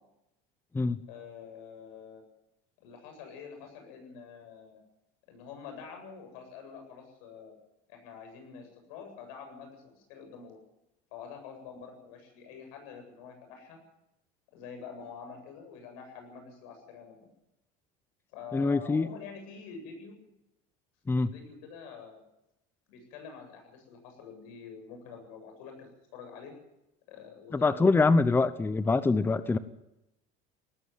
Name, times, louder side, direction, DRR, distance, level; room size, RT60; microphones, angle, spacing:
voice 1, 1.1-2.2 2.8-4.8 5.3-7.5 7.9-10.6 11.1-13.8 14.5-17.2 18.3-20.2 21.2-22.2 22.9-26.5 27.1-27.9, left 6 dB, 85° left, 4 dB, 8.0 m, -46 dB
voice 2, 18.5-19.1 21.1-21.3 27.5-29.6, left 3 dB, 10° left, 14 dB, 0.8 m, -24 dB
18.5 x 15.0 x 9.5 m, 0.89 s
cardioid pair, 130°, 18 cm